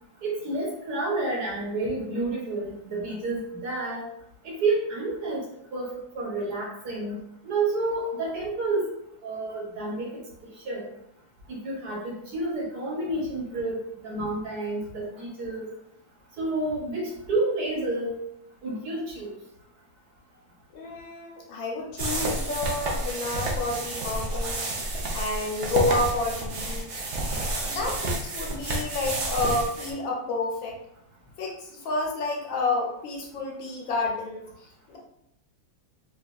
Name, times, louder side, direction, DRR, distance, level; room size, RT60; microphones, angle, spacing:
voice 1, 0.2-4.0 4.4-5.4 5.7-5.9 6.1-7.2 7.4-8.9 9.2-10.1 10.6-10.8 11.5-13.8 14.0-15.7 16.4-18.1 18.6-19.3, right 2 dB, 55° right, -4 dB, 1.5 m, -29 dB
voice 2, 20.7-24.6 25.1-26.9 27.5-30.7 31.4-35.0, left 3 dB, 75° left, -1 dB, 1.6 m, -30 dB
sound 1, 22.0-29.9, right 2 dB, 90° right, 0.6 m, -30 dB
4.9 x 2.4 x 2.5 m, 0.75 s
omnidirectional pair, 2.1 m